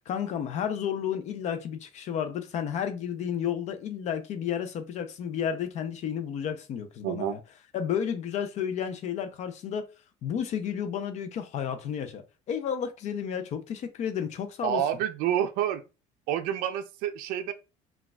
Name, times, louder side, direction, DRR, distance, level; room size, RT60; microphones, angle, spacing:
voice 1, 0.1-7.4 7.7-9.8 10.2-12.2 12.5-14.8, left 8 dB, 50° left, 0.5 m, -32 dB
voice 2, 7.0-7.3 14.6-15.8 16.3-17.5, right 10 dB, 75° right, 0.4 m, -28 dB
3.9 x 2.3 x 2.3 m
cardioid pair, 120°, 15 cm